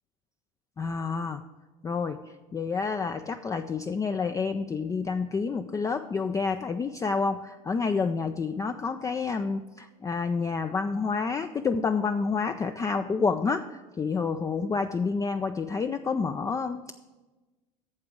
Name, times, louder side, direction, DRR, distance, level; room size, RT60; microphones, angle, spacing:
voice 1, 0.8-1.4 1.8-2.2 2.5-16.9, left 4 dB, 15° left, 8 dB, 0.3 m, -29 dB
8.6 x 6.8 x 6.1 m, 1.2 s
hypercardioid pair, 85°, 21 cm